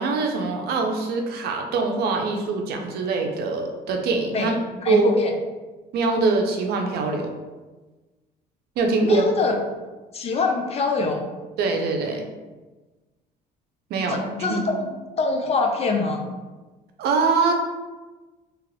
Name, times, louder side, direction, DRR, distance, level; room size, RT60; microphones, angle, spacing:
voice 1, 0.0-4.6 4.9-5.1 5.9-7.3 8.8-9.3 11.6-12.2 13.9-14.6 17.0-17.5, right 3 dB, 70° right, 3 dB, 0.5 m, -23 dB
voice 2, 4.3-5.3 9.0-9.6 10.1-11.3 14.1-16.2, left 3 dB, 35° left, 3 dB, 0.5 m, -24 dB
3.0 x 2.4 x 3.2 m, 1.2 s
cardioid pair, 110°, 17 cm